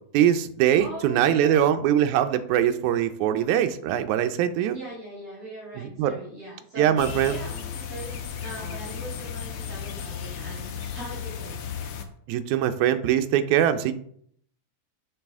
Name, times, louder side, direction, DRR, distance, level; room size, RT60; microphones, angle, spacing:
voice 1, 0.1-4.8 6.0-6.1 6.8-7.4 12.3-13.9, right 10 dB, 85° right, 9 dB, 2.0 m, -22 dB
voice 2, 0.8-1.7 4.7-11.6, right 1 dB, 60° right, -7 dB, 3.7 m, -41 dB
sound 1, 7.0-12.0, left 7 dB, 75° left, 1.3 m, -35 dB
7.3 x 6.3 x 3.5 m, 0.65 s
omnidirectional pair, 3.3 m